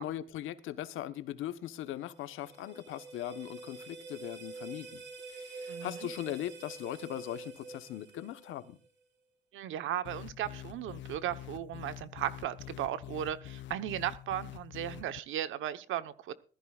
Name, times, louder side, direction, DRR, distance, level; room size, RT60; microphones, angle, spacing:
voice 1, 0.0-8.8, left 13 dB, 85° left, 1.1 m, -40 dB
sound 1, 1.8-8.9, right 4 dB, 65° right, 5.4 m, -47 dB
voice 2, 5.7-6.0 9.5-16.3, right 11 dB, 85° right, 1.1 m, -36 dB
sound 2, 10.0-15.2, left 14 dB, 70° left, 0.5 m, -46 dB
19.5 x 14.5 x 2.4 m
cardioid pair, 90°, 20 cm